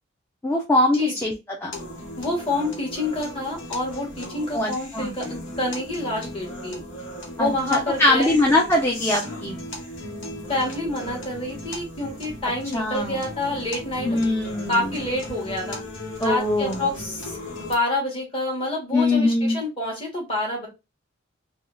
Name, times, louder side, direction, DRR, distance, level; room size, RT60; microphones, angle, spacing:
voice 1, 0.4-1.3 1.6-1.7 4.5-5.1 7.4-9.6 12.7-13.2 14.0-14.9 16.2-16.9 18.9-19.6, left 1 dB, 15° left, -1 dB, 0.5 m, -22 dB
sound 1, 1.7-17.7, left 1 dB, 85° left, 1.1 m, -37 dB
voice 2, 2.2-6.8 7.4-8.4 10.5-14.2 14.7-15.8 16.2-20.7, left 2 dB, 30° left, -2 dB, 1.5 m, -27 dB
3.5 x 2.3 x 2.4 m, 0.25 s
head